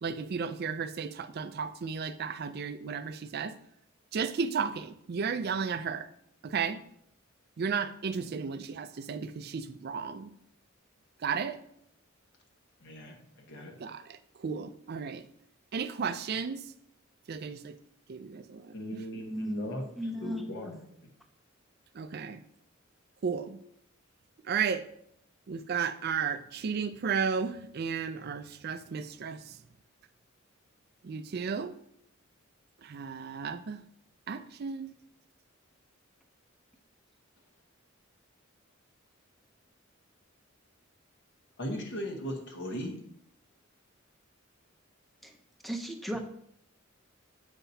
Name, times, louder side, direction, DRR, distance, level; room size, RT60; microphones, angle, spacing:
voice 1, 0.0-3.5 4.1-6.1 6.4-6.8 7.6-10.3 11.2-11.6 13.8-15.3 15.7-16.7 17.3-17.8 18.1-19.2 21.9-22.4 23.2-23.6 24.4-24.8 25.5-29.6 31.0-31.7 32.8-33.8 34.3-34.9, right 6 dB, 50° right, 12 dB, 0.4 m, -34 dB
voice 2, 12.8-13.8 18.7-19.8 20.2-20.8 41.6-42.9, equal, 60° left, 1 dB, 1.2 m, -38 dB
voice 3, 19.3-19.7 20.0-20.4 45.2-45.4 45.6-46.2, equal, ahead, 3 dB, 0.6 m, -35 dB
8.0 x 5.6 x 2.8 m, 0.72 s
head